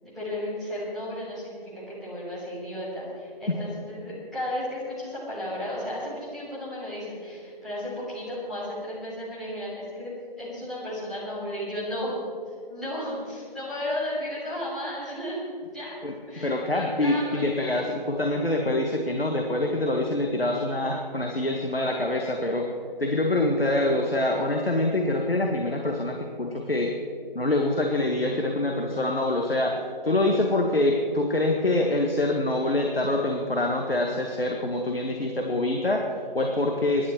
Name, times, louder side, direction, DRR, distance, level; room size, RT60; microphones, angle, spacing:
voice 1, 0.0-12.2 12.7-15.4 15.7-16.0 16.3-17.5, left 1 dB, ahead, -13 dB, 3.5 m, -34 dB
voice 2, 16.0-22.7 23.0-26.9 27.3-29.8 30.0-37.1, left 2 dB, 80° left, 1 dB, 1.9 m, -25 dB
23.0 x 11.0 x 4.6 m, 2.2 s
figure-of-eight pair, 155°, 29 cm